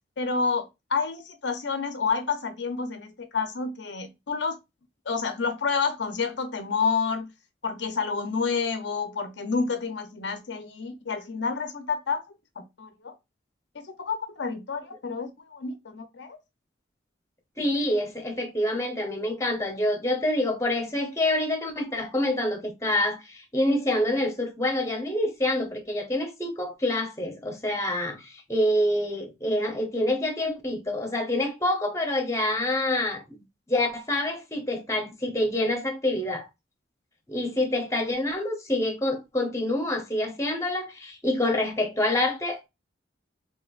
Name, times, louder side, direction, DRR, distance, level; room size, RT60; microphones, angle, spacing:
voice 1, 0.2-4.6 5.1-7.3 7.6-12.2 12.6-13.1 13.9-16.4, left 5 dB, 70° left, 0.6 m, -29 dB
voice 2, 17.6-36.5 37.3-42.7, left 1 dB, 15° left, 0.8 m, -27 dB
4.3 x 2.9 x 2.3 m
head